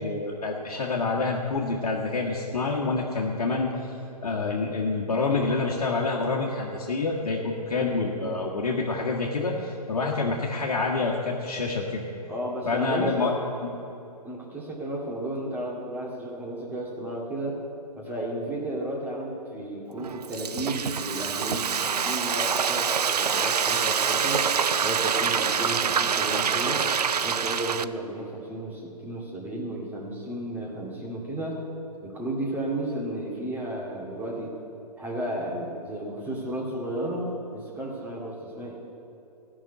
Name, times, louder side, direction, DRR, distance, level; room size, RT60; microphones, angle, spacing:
voice 1, 0.0-3.7 4.2-12.1 12.7-13.3 13.6-13.7, left 3 dB, 65° left, -3 dB, 1.6 m, -27 dB
voice 2, 7.8-8.2 12.3-13.3 14.2-17.6 18.0-24.5 24.8-26.9 27.2-31.6 32.0-34.6 35.0-38.8, right 1 dB, 10° right, -3 dB, 2.1 m, -33 dB
Frying (food), 20.0-27.8, right 6 dB, 75° right, 0.5 m, -26 dB
14.5 x 6.3 x 9.2 m, 3.0 s
figure-of-eight pair, 125°, 20 cm